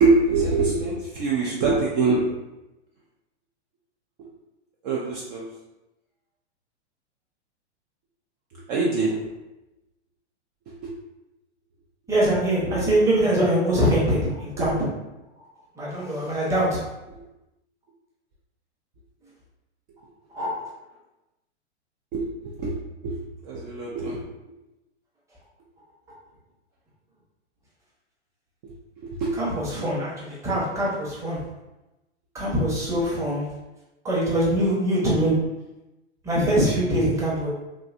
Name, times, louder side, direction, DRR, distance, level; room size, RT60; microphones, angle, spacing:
voice 1, 0.0-2.3 4.8-5.4 8.7-9.3 10.8-10.9 12.6-12.9 14.6-14.8 22.1-22.8 23.0-23.2 23.4-24.2 29.0-29.3, right 3 dB, 35° right, -4 dB, 0.5 m, -24 dB
voice 2, 12.1-14.8 15.8-16.8 20.3-20.5 29.4-31.4 32.3-33.5 34.0-35.4 36.2-37.5, right 1 dB, 10° right, -6 dB, 0.8 m, -23 dB
3.0 x 2.6 x 2.5 m, 0.98 s
hypercardioid pair, 120°, 35 cm